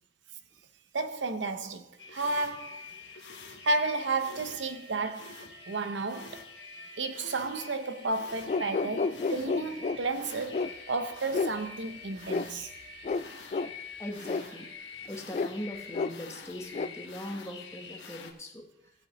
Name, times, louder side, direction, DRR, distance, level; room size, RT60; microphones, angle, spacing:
voice 1, 0.9-2.9 3.6-5.4 5.7-6.4 7.0-12.7, right 3 dB, 85° right, 0.8 m, -32 dB
sound 1, 2.0-18.3, left 5 dB, 75° left, 1.3 m, -47 dB
sound 2, 2.5-14.7, right 3 dB, 60° right, 1.2 m, -54 dB
sound 3, 8.5-10.0 10.5-10.7 11.3-11.5 12.3-12.5 13.0-13.2 13.5-13.7 14.2-14.4 15.3-15.5 15.9-16.1 16.7-16.9, left 4 dB, 40° left, 0.3 m, -30 dB
voice 2, 14.0-18.6, left 1 dB, 15° left, 1.2 m, -41 dB
16.5 x 7.7 x 3.1 m
head